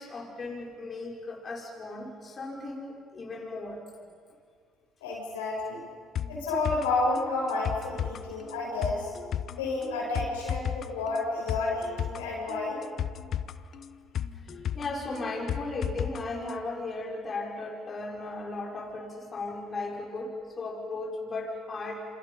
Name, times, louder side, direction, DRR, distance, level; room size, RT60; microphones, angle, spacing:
voice 1, 0.0-3.8 8.0-8.1 14.3-22.1, left 2 dB, 40° left, -2 dB, 5.5 m, -36 dB
voice 2, 5.0-5.9 6.3-9.1 9.6-12.8, left 2 dB, 90° left, -4 dB, 7.3 m, -30 dB
sound 1, 6.1-16.2 16.5-16.6, left 9 dB, 55° left, 0.9 m, -34 dB
28.0 x 27.5 x 5.7 m, 2.1 s
hypercardioid pair, 55°, 0 cm